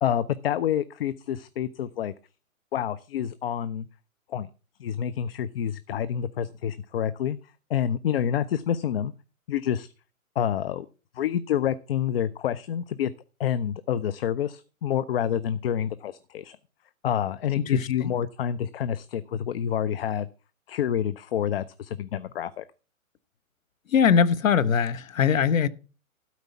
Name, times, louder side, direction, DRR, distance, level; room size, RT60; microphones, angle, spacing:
voice 1, 0.0-2.1 2.7-3.9 4.3-4.5 4.8-7.4 7.7-9.1 9.5-9.9 10.4-10.9 11.2-13.1 13.4-16.6 17.0-20.3 20.7-22.6, left 9 dB, 45° left, 0.6 m, -28 dB
voice 2, 17.6-18.1 23.9-25.7, left 7 dB, 70° left, 1.1 m, -22 dB
12.5 x 4.7 x 8.2 m
hypercardioid pair, 135°, 42 cm